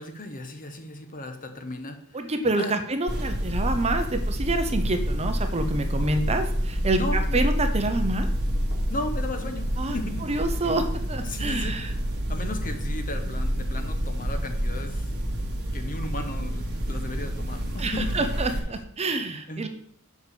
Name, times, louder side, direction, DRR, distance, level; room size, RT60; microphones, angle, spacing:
voice 1, 0.0-2.3 2.6-2.8 6.9-7.6 8.9-10.6 11.2-11.8 12.3-15.2 15.7-18.2 18.4-18.5 19.5-19.7, left 2 dB, 40° left, 6 dB, 1.1 m, -36 dB
voice 2, 2.1-8.3 9.8-10.0 10.3-11.9 17.8-19.7, right 2 dB, 30° right, 7 dB, 0.8 m, -27 dB
sound 1, 3.1-18.6, equal, 50° right, 1.5 m, -28 dB
sound 2, 4.7-5.2 6.0-6.4 7.4-7.8 8.7-9.1 10.1-10.6 11.4-11.8 12.6-13.1 13.8-14.3, right 1 dB, 80° left, 3.3 m, -43 dB
7.2 x 4.8 x 6.8 m, 0.67 s
head